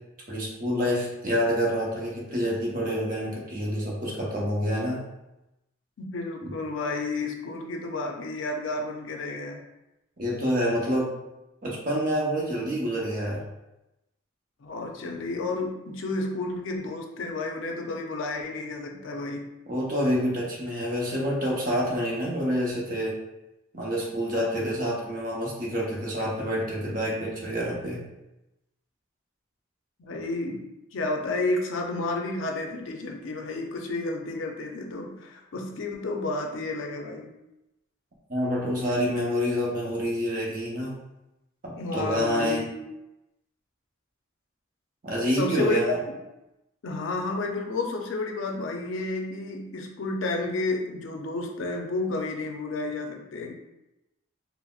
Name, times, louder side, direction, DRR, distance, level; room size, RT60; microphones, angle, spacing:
voice 1, 0.3-5.0 6.4-6.5 10.2-11.1 11.6-13.4 19.7-23.2 23.7-28.0 38.3-41.0 41.6-42.6 45.0-46.0, equal, 45° right, -4 dB, 0.8 m, -27 dB
voice 2, 6.0-9.6 14.6-19.5 30.0-30.6 30.9-37.3 41.8-42.7 45.3-45.9 46.8-53.5, left 2 dB, 80° left, 2 dB, 0.5 m, -31 dB
3.9 x 2.0 x 2.3 m, 0.93 s
head